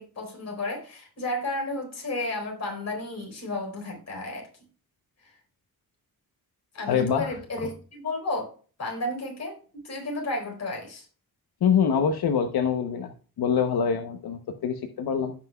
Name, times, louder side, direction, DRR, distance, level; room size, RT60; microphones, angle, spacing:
voice 1, 0.0-4.5 6.7-8.5 8.8-11.1, left 2 dB, 45° left, 1 dB, 4.3 m, -32 dB
voice 2, 6.9-7.3 11.6-13.1 13.4-15.3, left 7 dB, 80° left, 5 dB, 1.0 m, -24 dB
16.5 x 5.8 x 2.3 m, 0.40 s
wide cardioid pair, 135°, 37 cm